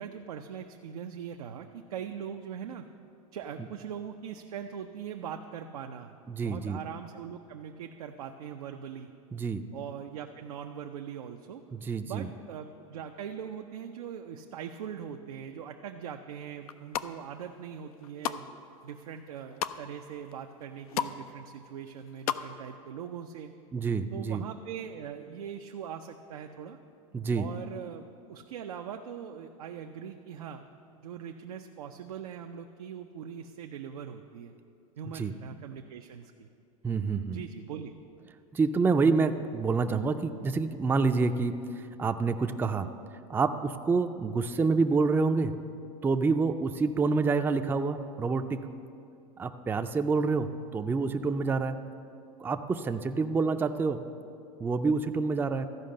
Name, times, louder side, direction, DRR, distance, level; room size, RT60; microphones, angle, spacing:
voice 1, 0.0-2.9 3.3-9.1 9.7-11.6 12.0-18.5 18.8-23.5 23.8-26.8 27.4-28.0 28.3-30.6 31.0-34.5 35.0-36.5 37.3-37.9, right 8 dB, 85° right, 4 dB, 0.5 m, -41 dB
voice 2, 6.3-6.8 9.3-9.6 11.7-12.3 23.7-24.4 27.1-27.5 35.1-35.3 36.8-37.4 38.5-42.9 43.3-45.5 46.0-48.6 49.4-51.8 52.4-54.0 54.6-55.7, right 4 dB, 10° right, 8 dB, 0.4 m, -27 dB
sound 1, 16.6-17.1 17.7-18.4 18.8-19.8 20.3-20.4 20.6-21.2 21.5-22.4 22.7-22.8, left 10 dB, 90° left, 0.4 m, -33 dB
13.5 x 5.1 x 6.4 m, 2.5 s
hypercardioid pair, 100°, 18 cm